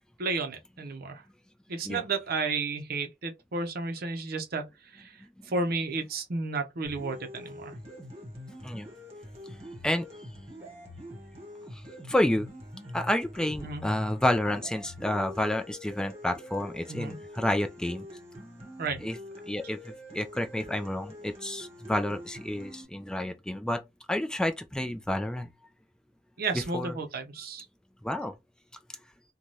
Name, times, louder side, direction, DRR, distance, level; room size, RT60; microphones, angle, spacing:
voice 1, 0.2-1.2 1.7-7.8 13.6-14.0 16.9-17.2 18.8-19.0 26.4-27.7, right 3 dB, 55° right, 0.6 m, -33 dB
sound 1, 6.8-22.8, left 1 dB, 35° right, 1.3 m, -45 dB
voice 2, 12.1-12.5 12.9-18.1 19.0-19.2 19.5-23.8 24.1-25.5 26.7-26.9 28.0-28.3, left 1 dB, 5° left, 0.4 m, -29 dB
2.6 x 2.3 x 3.2 m
head